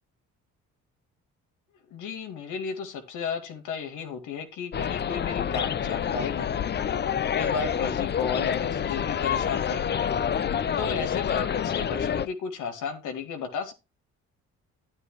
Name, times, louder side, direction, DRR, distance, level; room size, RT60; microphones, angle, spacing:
voice 1, 1.9-6.8 7.3-10.0 10.8-13.7, left 6 dB, 85° left, 6 dB, 2.0 m, -33 dB
sound 1, 4.7-12.3, left 8 dB, 35° left, 0.6 m, -28 dB
9.8 x 9.8 x 3.2 m, 0.26 s
cardioid pair, 90°, 30 cm